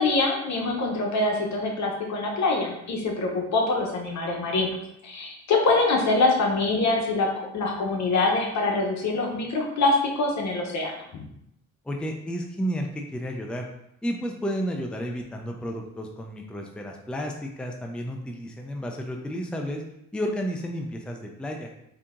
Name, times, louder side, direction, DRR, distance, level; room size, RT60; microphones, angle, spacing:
voice 1, 0.0-4.8 5.0-11.2, left 3 dB, 65° left, 0 dB, 1.0 m, -24 dB
voice 2, 11.8-13.7 14.0-19.8 20.1-21.7, equal, 5° left, 2 dB, 0.5 m, -32 dB
3.8 x 2.8 x 3.6 m, 0.78 s
cardioid pair, 90°, 30 cm